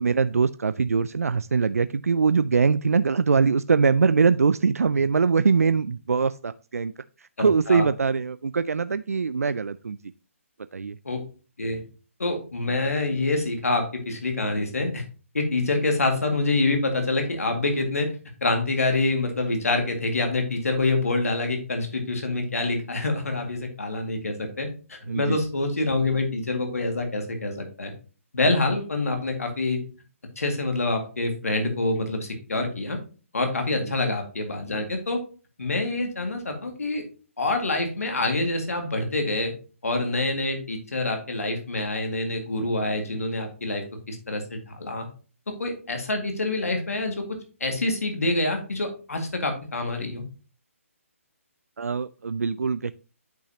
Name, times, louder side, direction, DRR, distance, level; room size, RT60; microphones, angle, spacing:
voice 1, 0.0-6.9 7.4-10.0 10.7-11.0 25.1-25.4 51.8-52.9, right 5 dB, 90° right, 14 dB, 0.3 m, -22 dB
voice 2, 7.4-7.8 11.1-11.2 11.6-11.8 12.2-15.0 15.3-18.1 18.4-27.9 28.3-29.8 30.4-33.0 33.3-35.2 35.6-37.0 37.4-39.5 39.8-45.1 45.6-47.2 47.6-50.2, left 2 dB, 85° left, 4 dB, 2.0 m, -26 dB
8.7 x 5.6 x 2.8 m, 0.37 s
hypercardioid pair, 150°, 8 cm